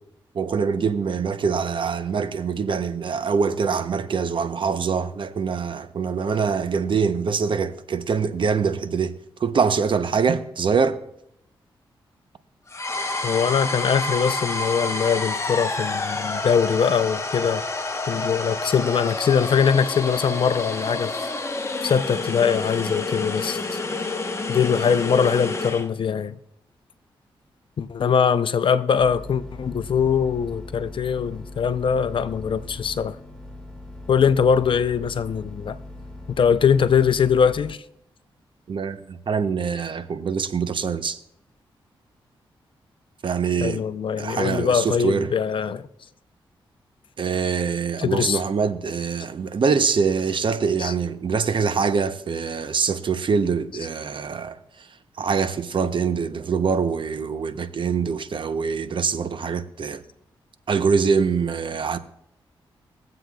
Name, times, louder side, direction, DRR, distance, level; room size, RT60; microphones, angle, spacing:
voice 1, 0.3-9.1 9.4-11.0 38.7-41.2 43.2-43.8 44.2-45.3 47.2-54.6 55.2-60.0 60.7-62.0, right 5 dB, 60° right, 0.8 m, -24 dB
sound 1, 12.7-25.9, left 3 dB, 30° left, 1.1 m, -28 dB
voice 2, 13.2-17.6 18.1-21.2 21.8-23.8 24.5-26.3 27.8-33.2 34.1-35.8 36.4-37.8 43.6-45.9 48.0-48.4 50.8-50.9, left 7 dB, 60° left, 0.6 m, -22 dB
sound 2, 29.0-37.7, left 2 dB, 10° left, 1.9 m, -39 dB
22.5 x 7.7 x 2.3 m
cardioid pair, 50°, 10 cm